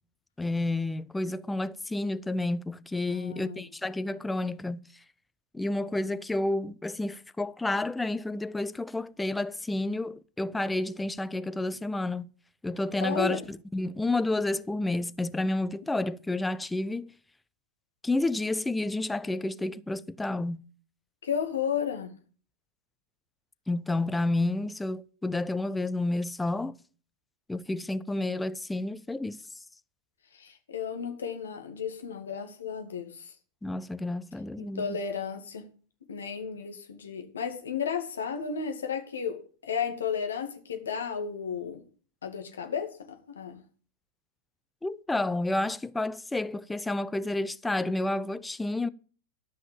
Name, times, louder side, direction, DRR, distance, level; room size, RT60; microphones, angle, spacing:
voice 1, 0.4-4.8 5.5-12.3 12.6-17.1 18.0-20.6 23.7-26.8 27.5-29.4 33.6-35.0 44.8-48.9, left 2 dB, 5° left, 0.6 m, -30 dB
voice 2, 3.1-3.7 13.0-13.4 21.2-22.2 30.3-33.3 34.6-35.6 36.1-39.4 39.6-41.8 42.2-43.6, left 7 dB, 70° left, 2.2 m, -33 dB
13.0 x 5.7 x 8.7 m
figure-of-eight pair, 90°, 0 cm